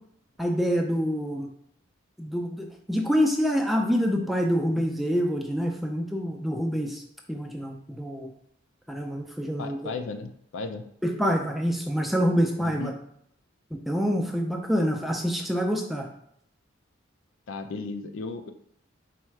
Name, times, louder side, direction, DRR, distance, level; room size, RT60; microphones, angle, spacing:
voice 1, 0.4-1.5 2.2-7.0 7.3-8.3 8.9-9.9 11.0-12.9 13.9-16.1, equal, ahead, 1 dB, 0.4 m, -26 dB
voice 2, 9.6-10.8 12.6-12.9 17.5-18.5, left 4 dB, 85° left, 7 dB, 0.5 m, -35 dB
4.1 x 2.4 x 4.5 m, 0.69 s
head